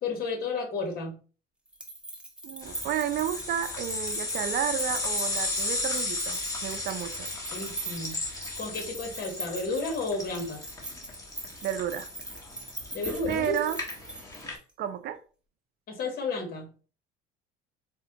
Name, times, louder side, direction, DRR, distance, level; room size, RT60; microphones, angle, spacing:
voice 1, 0.0-1.2 7.5-8.2 8.6-10.6 12.9-13.7 15.9-16.7, left 3 dB, 50° left, 3 dB, 1.3 m, -32 dB
sound 1, 1.7-14.7, right 2 dB, 5° right, 0.6 m, -42 dB
voice 2, 2.4-7.3 11.6-12.1 13.3-13.8 14.8-15.2, right 10 dB, 55° right, 10 dB, 0.5 m, -31 dB
sound 2, 2.6-14.6, left 2 dB, 15° left, 1.1 m, -35 dB
4.2 x 2.2 x 2.9 m, 0.37 s
cardioid pair, 110°, 20 cm